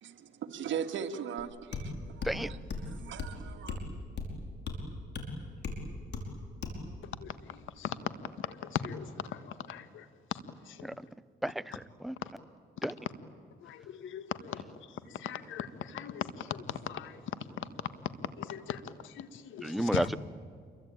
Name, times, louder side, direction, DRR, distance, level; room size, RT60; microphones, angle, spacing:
voice 1, 0.0-3.8, right 8 dB, 70° right, 7 dB, 2.2 m, -39 dB
sound 1, 1.4-1.5 1.7-1.9 2.2-2.4 2.7-2.9 3.2-3.3 3.7-3.8 4.2-4.3 4.7-4.8 5.1-5.3 5.6-5.8 6.1-6.3 6.6-6.8, left 4 dB, 60° left, 5.3 m, -36 dB
voice 2, 8.7-9.1 9.7-10.0 13.6-14.2 14.5-14.6 15.2-16.3 16.9-17.2 18.4-18.8 19.2-20.1, left 9 dB, 80° left, 13 dB, 1.7 m, -38 dB
voice 3, 11.4-12.2 12.8-12.9 19.6-20.2, right 1 dB, ahead, 15 dB, 0.7 m, -32 dB
28.5 x 23.0 x 9.1 m, 2.2 s
cardioid pair, 90°, 20 cm